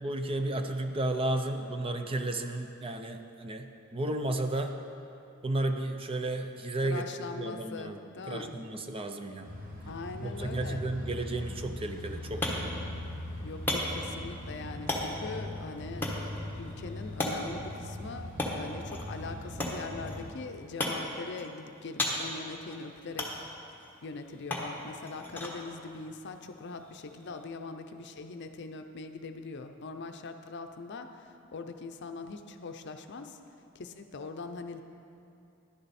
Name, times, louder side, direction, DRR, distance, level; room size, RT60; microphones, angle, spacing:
voice 1, 0.0-4.8 5.4-8.0 8.3-9.6 10.2-12.5, right 2 dB, 25° right, 6 dB, 0.5 m, -33 dB
voice 2, 6.8-8.6 9.9-10.8 13.4-16.1 16.6-18.3 18.6-23.3 24.0-33.4 33.7-34.8, left 3 dB, 55° left, 7 dB, 0.6 m, -42 dB
sound 1, 9.4-20.3, left 1 dB, 45° right, 1.6 m, -40 dB
sound 2, 11.8-27.4, left 1 dB, 10° left, 1.2 m, -38 dB
11.0 x 10.0 x 4.2 m, 2.7 s
head